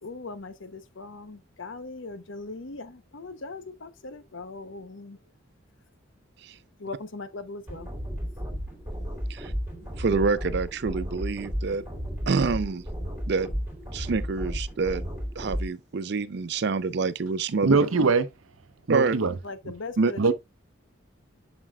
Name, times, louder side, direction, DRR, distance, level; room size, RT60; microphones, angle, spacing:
voice 1, 0.0-5.2 6.8-7.9 19.4-20.3, left 3 dB, 70° left, 0.8 m, -39 dB
sound 1, 7.7-15.7, equal, 10° right, 2.9 m, -33 dB
voice 2, 10.0-11.8 12.3-12.8 13.3-13.5 13.9-15.0 15.4-17.8 18.9-19.1 20.0-20.3, right 4 dB, 55° right, 0.5 m, -27 dB
voice 3, 17.6-18.3 18.9-19.3 20.2-20.3, right 4 dB, 90° right, 0.7 m, -21 dB
7.4 x 6.1 x 2.3 m
head